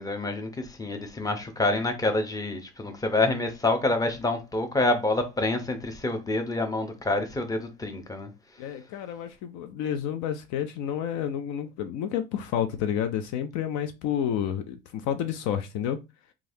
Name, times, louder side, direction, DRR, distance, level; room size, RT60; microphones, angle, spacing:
voice 1, 0.0-8.3, left 2 dB, 10° left, 0.7 m, -27 dB
voice 2, 8.6-16.0, left 9 dB, 60° left, 0.5 m, -30 dB
3.1 x 2.5 x 2.7 m
hypercardioid pair, 75°, 33 cm